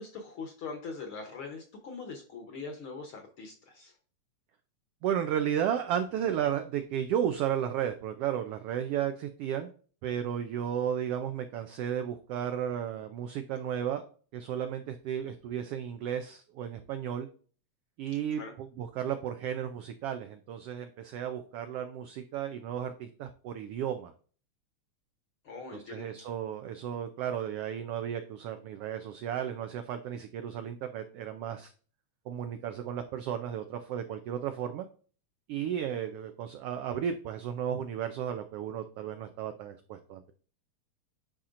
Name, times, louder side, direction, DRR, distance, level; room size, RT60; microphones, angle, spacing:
voice 1, 0.0-4.0 18.3-18.5 25.4-26.1, left 4 dB, 60° left, 3 dB, 1.5 m, -42 dB
voice 2, 5.0-9.7 10.0-14.0 14.3-17.3 18.0-24.1 25.7-31.7 32.3-34.9 35.5-40.3, right 9 dB, 90° right, 8 dB, 1.3 m, -34 dB
9.9 x 4.3 x 2.5 m, 0.40 s
omnidirectional pair, 3.3 m